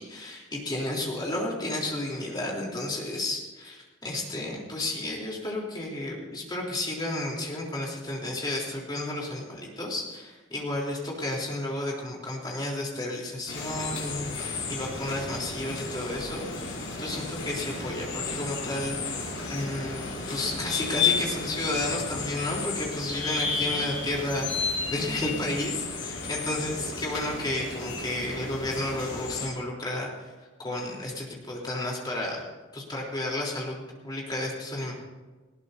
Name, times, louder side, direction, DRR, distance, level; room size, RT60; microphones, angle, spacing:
voice 1, 0.0-19.2 19.5-30.3 30.6-32.4 32.7-34.9, left 1 dB, 20° left, -2 dB, 3.4 m, -32 dB
sound 1, 13.5-29.5, left 4 dB, 65° left, 5.1 m, -33 dB
19.5 x 17.0 x 2.7 m, 1.3 s
head